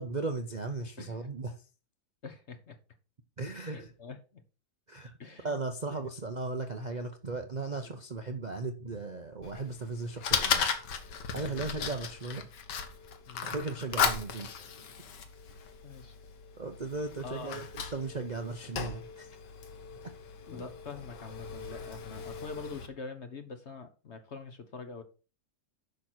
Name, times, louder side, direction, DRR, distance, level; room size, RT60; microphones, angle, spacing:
voice 1, 0.0-1.5 3.4-3.9 4.9-5.1 5.4-10.7 11.3-12.5 13.4-14.5 16.6-17.7 17.9-19.3 21.7-21.8, right 3 dB, 40° right, 0.6 m, -36 dB
voice 2, 1.0-1.3 2.2-2.8 3.6-4.4 5.2-5.6 7.7-8.0 11.4-11.7 13.3-13.5 15.8-16.2 17.2-17.6 20.5-25.0, left 4 dB, 45° left, 1.1 m, -45 dB
Fire, 9.4-22.9, left 6 dB, 75° left, 1.8 m, -36 dB
9.9 x 6.2 x 4.4 m
omnidirectional pair, 1.9 m